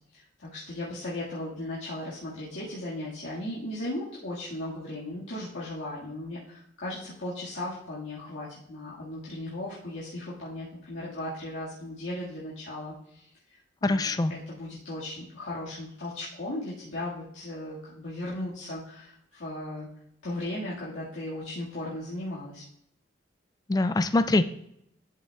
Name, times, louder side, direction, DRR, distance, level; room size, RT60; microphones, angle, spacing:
voice 1, 0.1-19.9 20.2-22.6, left 1 dB, 85° left, -8 dB, 1.8 m, -37 dB
voice 2, 13.8-14.3 23.7-24.4, left 2 dB, 20° left, 11 dB, 0.3 m, -23 dB
11.5 x 5.6 x 2.3 m, 0.76 s
head